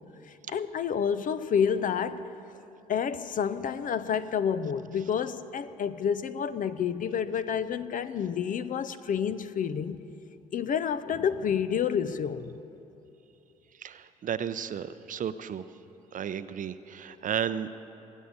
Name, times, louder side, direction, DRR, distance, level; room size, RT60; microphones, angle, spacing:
voice 1, 0.5-2.3 2.9-10.0 10.5-12.6, left 7 dB, 50° left, 0.7 m, -29 dB
voice 2, 13.8-15.7 16.1-17.7, right 8 dB, 50° right, 0.6 m, -33 dB
19.0 x 8.3 x 8.7 m
hypercardioid pair, 50°, 18 cm